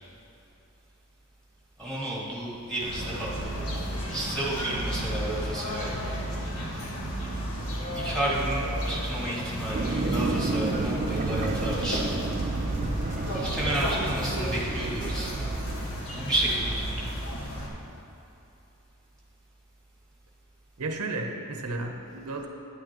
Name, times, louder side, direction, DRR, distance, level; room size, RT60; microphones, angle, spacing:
voice 1, 1.8-3.7 4.1-5.9 8.0-12.2 13.3-15.5 16.1-17.1, right 1 dB, 5° left, -8 dB, 2.0 m, -31 dB
sound 1, 2.8-17.7, equal, 75° left, 1.5 m, -32 dB
sound 2, 9.7-16.1, right 3 dB, 35° right, 0.4 m, -32 dB
voice 2, 20.8-22.5, right 2 dB, 90° right, 3 dB, 0.8 m, -33 dB
10.0 x 9.6 x 3.0 m, 2.9 s
head